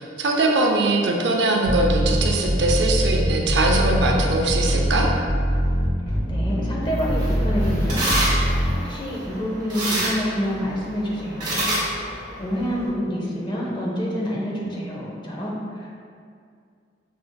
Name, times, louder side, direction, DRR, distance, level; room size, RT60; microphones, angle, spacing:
voice 1, 0.0-5.1, right 2 dB, 80° right, 0 dB, 0.5 m, -21 dB
sound 1, 1.6-8.7, equal, 55° left, 1.3 m, -22 dB
voice 2, 6.3-8.5 8.8-11.6 12.4-15.9, equal, 25° left, -4 dB, 0.6 m, -27 dB
sound 2, 6.8-12.9, right 1 dB, 25° right, 1.2 m, -28 dB
6.0 x 2.5 x 2.2 m, 2.3 s
head